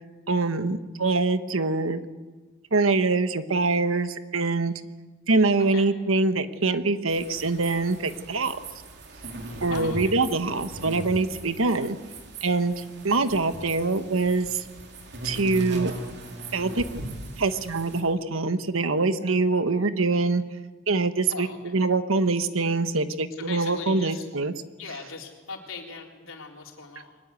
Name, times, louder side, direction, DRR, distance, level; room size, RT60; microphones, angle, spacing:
voice 1, 0.3-2.0 2.7-4.7 5.3-8.6 9.6-12.0 12.4-14.6 15.2-15.9 16.5-16.8 17.4-20.4 20.9-21.5 21.7-24.5, right 3 dB, 85° right, 10 dB, 1.3 m, -24 dB
sound 1, 7.1-18.0, right 1 dB, 55° right, 3.1 m, -39 dB
voice 2, 9.7-10.1 21.3-21.7 23.3-24.3 24.8-27.2, left 4 dB, 85° left, 1 dB, 3.9 m, -39 dB
23.0 x 20.0 x 8.4 m, 1.3 s
head